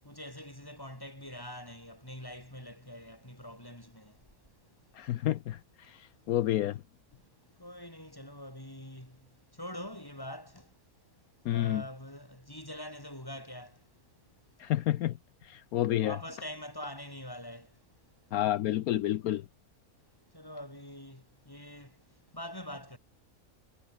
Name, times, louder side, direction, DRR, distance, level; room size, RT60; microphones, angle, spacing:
voice 1, 0.0-4.9 5.8-6.2 7.1-11.1 11.5-14.0 14.5-14.7 16.0-17.9 20.3-23.0, left 1 dB, 15° left, 6.5 m, -45 dB
voice 2, 5.0-6.8 11.5-11.8 14.6-15.1 15.4-16.2 18.3-19.4, left 13 dB, 75° left, 1.1 m, -30 dB
omnidirectional pair, 1.6 m